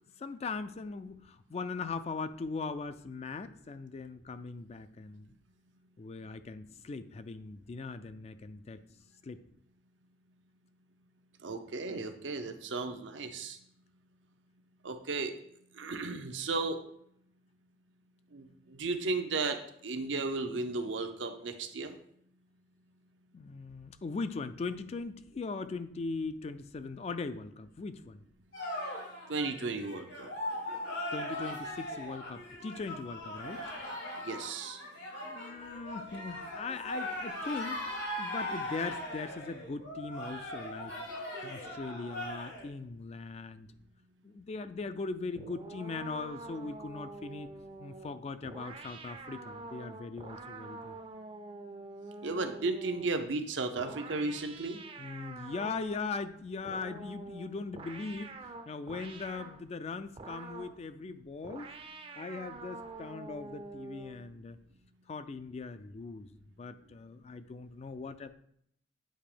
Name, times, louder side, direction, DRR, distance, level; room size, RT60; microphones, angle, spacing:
voice 1, 0.2-5.3 6.0-8.8 9.2-9.4 23.3-28.2 31.1-33.6 35.2-37.8 38.2-40.9 41.4-43.7 44.2-47.5 47.8-51.0 55.0-58.4 58.7-61.7 62.2-64.6 65.1-66.3 66.6-68.3, left 4 dB, 35° left, 11 dB, 0.3 m, -40 dB
voice 2, 11.4-13.6 14.8-15.3 15.8-16.8 18.3-21.9 29.3-30.3 34.2-34.8 52.2-54.8, right 3 dB, 80° right, 7 dB, 0.8 m, -34 dB
sound 1, 28.5-42.7, left 1 dB, 90° left, 2.9 m, -39 dB
sound 2, 45.4-53.2 53.8-56.3 56.6-59.6 60.2-60.8 61.4-64.3, right 3 dB, 30° right, 0.5 m, -46 dB
8.7 x 2.9 x 5.0 m, 0.69 s
head